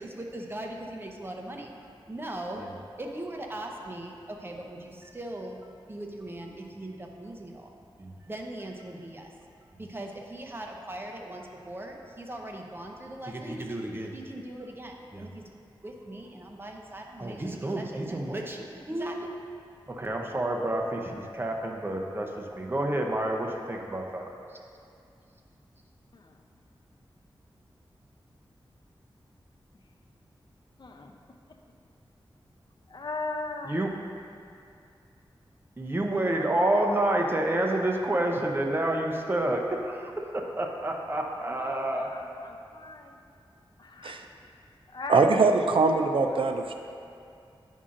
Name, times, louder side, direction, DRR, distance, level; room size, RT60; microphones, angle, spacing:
voice 1, 0.0-1.7 2.1-2.7 3.0-5.6 5.9-7.7 8.0-9.3 9.8-15.4 15.8-19.3 19.9-24.3 33.7-33.9 35.8-42.1, right 1 dB, 25° right, 1 dB, 0.7 m, -31 dB
voice 2, 30.8-31.1 32.9-33.8 36.6-36.9 41.5-43.2 43.8-44.2 44.9-45.5 46.2-46.4, left 3 dB, 55° left, 3 dB, 0.6 m, -38 dB
voice 3, 45.1-46.7, right 4 dB, 70° right, 5 dB, 0.5 m, -22 dB
9.6 x 5.5 x 2.5 m, 2.4 s
wide cardioid pair, 75°, 9 cm